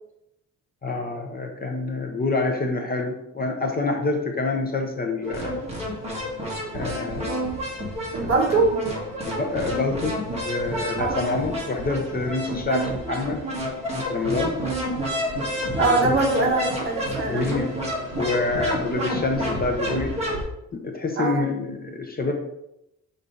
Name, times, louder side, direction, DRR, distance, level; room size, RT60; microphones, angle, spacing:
voice 1, 0.8-5.6 6.7-7.4 8.2-8.6 9.2-10.2 10.4-13.4 13.9-14.6 15.8-16.1 17.2-17.7 18.2-20.2 20.7-22.3, left 3 dB, 30° left, 2 dB, 0.6 m, -27 dB
sound 1, 5.2-20.4, equal, 20° right, 1.6 m, -29 dB
voice 2, 8.1-8.8 11.0-11.2 12.6-13.0 14.6-14.9 15.8-17.5 18.8-19.0 21.2-21.5, right 3 dB, 40° right, 0 dB, 1.3 m, -23 dB
6.9 x 3.8 x 3.8 m, 0.84 s
wide cardioid pair, 170°, 33 cm